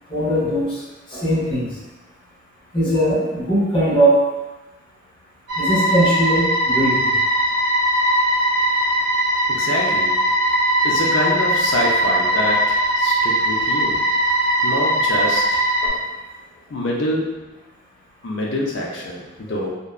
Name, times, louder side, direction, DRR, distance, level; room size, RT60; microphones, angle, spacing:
voice 1, 0.1-0.8 1.1-1.8 2.7-4.2 5.6-7.2 15.8-16.0, right 1 dB, 25° left, -8 dB, 0.8 m, -19 dB
sound 1, 5.5-15.9, right 1 dB, 60° right, 0.6 m, -20 dB
voice 2, 9.5-10.2 10.8-14.0 14.6-15.6 16.7-17.5 18.2-19.7, left 1 dB, 65° left, -3 dB, 0.5 m, -25 dB
2.6 x 2.1 x 2.3 m, 1.1 s
head